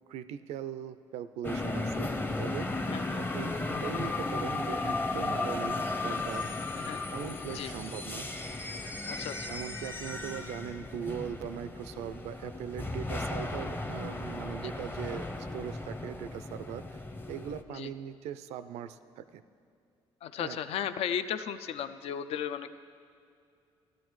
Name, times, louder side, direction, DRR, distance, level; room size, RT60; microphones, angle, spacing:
voice 1, 0.1-2.7 3.2-6.5 7.1-8.3 9.5-17.0 17.3-19.4 20.4-20.6, right 9 dB, 85° right, 13 dB, 0.4 m, -40 dB
sound 1, 1.4-17.6, left 2 dB, 20° left, 0.7 m, -35 dB
voice 2, 2.9-3.2 6.8-7.0 7.5-7.7 9.1-9.6 17.7-17.9 20.2-22.8, left 9 dB, 70° left, 11 dB, 0.4 m, -35 dB
15.5 x 13.0 x 3.1 m, 2.4 s
cardioid pair, 85°, 11 cm